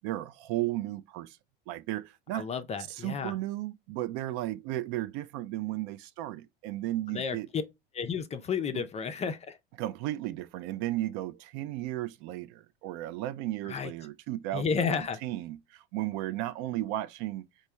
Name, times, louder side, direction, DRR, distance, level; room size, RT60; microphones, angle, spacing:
voice 1, 0.0-1.4 1.7-2.5 2.9-7.5 9.8-17.5, right 15 dB, 55° right, 0.5 m, -34 dB
voice 2, 2.3-3.3 7.1-7.6 7.9-9.6 13.6-13.9 14.5-15.2, left 6 dB, 20° left, 0.4 m, -32 dB
4.3 x 2.2 x 3.1 m
hypercardioid pair, 90°, 30 cm